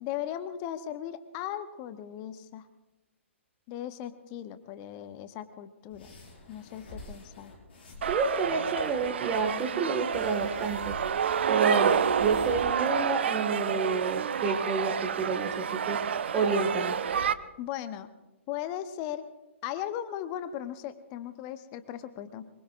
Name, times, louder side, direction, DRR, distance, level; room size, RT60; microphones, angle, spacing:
voice 1, 0.0-2.7 3.7-6.1 6.5-7.5 17.6-18.1 18.5-19.3 19.6-22.5, left 11 dB, 30° left, 11 dB, 0.8 m, -37 dB
sound 1, 5.9-8.2 8.7-9.5 10.1-12.6, left 2 dB, 55° left, 5.7 m, -47 dB
sound 2, 8.0-17.3, right 7 dB, 60° right, 0.7 m, -29 dB
voice 2, 8.1-11.0 11.5-17.0, right 4 dB, 20° right, -1 dB, 1.7 m, -29 dB
24.0 x 22.0 x 2.5 m, 1.0 s
figure-of-eight pair, 125°, 7 cm